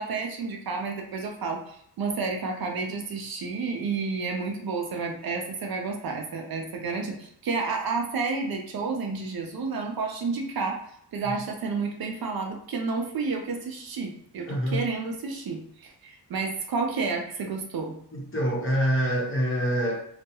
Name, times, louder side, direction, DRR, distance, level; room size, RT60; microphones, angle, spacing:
voice 1, 0.0-10.8 11.1-17.9, right 4 dB, 55° right, 2 dB, 0.6 m, -30 dB
voice 2, 14.5-14.8 18.1-20.0, equal, 30° left, -3 dB, 1.0 m, -25 dB
2.3 x 2.1 x 2.8 m, 0.71 s
cardioid pair, 75°, 43 cm